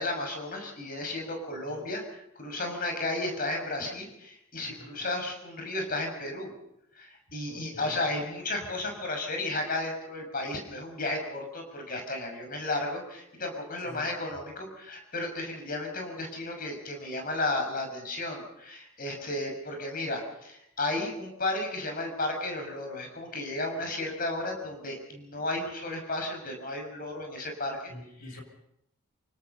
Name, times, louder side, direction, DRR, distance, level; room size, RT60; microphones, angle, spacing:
voice 1, 0.0-6.5 6.9-27.9 28.2-28.4, left 2 dB, 40° left, 3 dB, 6.1 m, -33 dB
voice 2, 7.5-8.0 13.8-14.0 27.9-28.4, left 1 dB, 80° left, 3 dB, 6.4 m, -46 dB
28.5 x 18.0 x 5.5 m, 0.81 s
head